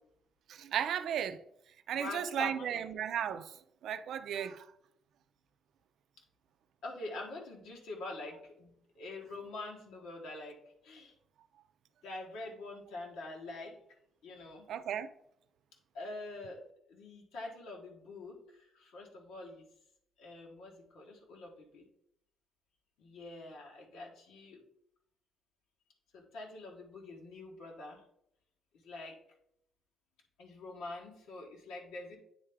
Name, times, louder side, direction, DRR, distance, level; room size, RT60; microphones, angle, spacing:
voice 1, 0.5-1.4 1.9-3.6 3.8-4.7 14.7-15.1, right 9 dB, 75° right, 0.4 m, -35 dB
voice 2, 1.9-2.8 6.8-10.6 10.8-11.1 12.0-13.8 14.2-14.7 15.9-16.6 16.9-19.7 20.2-21.8 23.0-24.6 26.1-28.0 28.8-29.2 30.4-32.2, left 2 dB, 90° left, 1.4 m, -45 dB
9.3 x 3.3 x 3.6 m
cardioid pair, 90°, 0 cm